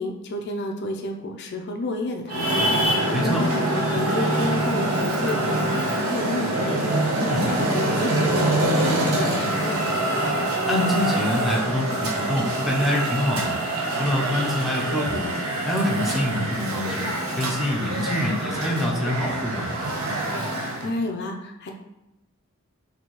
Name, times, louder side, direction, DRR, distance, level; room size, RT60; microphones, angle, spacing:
voice 1, 0.0-9.8 20.8-21.7, left 2 dB, 50° left, 3 dB, 0.4 m, -31 dB
Traffic noise roadway noise, 2.3-20.9, right 1 dB, 70° right, 0.8 m, -25 dB
voice 2, 3.1-3.4 7.2-7.5 10.7-13.6 14.0-15.3 15.6-17.1 17.4-19.7, left 1 dB, ahead, -2 dB, 0.5 m, -25 dB
4.3 x 2.7 x 2.9 m, 0.93 s
head